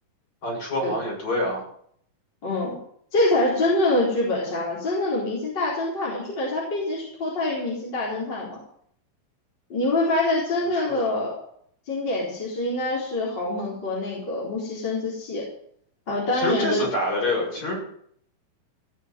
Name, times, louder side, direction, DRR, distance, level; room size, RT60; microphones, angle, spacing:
voice 1, 0.4-1.7 10.7-11.2 16.3-17.8, left 1 dB, 50° left, -3 dB, 7.8 m, -27 dB
voice 2, 2.4-2.7 3.1-8.6 9.7-11.4 11.9-15.4 16.1-16.8, left 2 dB, 30° left, -5 dB, 4.6 m, -25 dB
16.5 x 6.8 x 9.5 m, 0.64 s
omnidirectional pair, 4.2 m